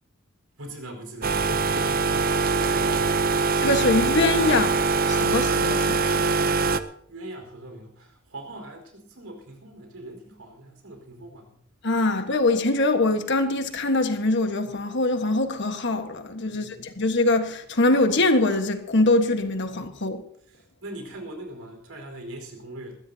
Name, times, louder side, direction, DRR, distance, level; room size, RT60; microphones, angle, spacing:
voice 1, 0.6-3.2 7.1-11.5 16.5-16.8 20.5-23.0, right 1 dB, 90° right, 4.7 m, -40 dB
sound 1, 1.2-6.8, right 4 dB, 45° right, 0.7 m, -23 dB
voice 2, 3.6-4.8 5.1-6.3 11.8-20.2, left 2 dB, 55° left, 1.5 m, -23 dB
21.5 x 15.0 x 2.8 m
head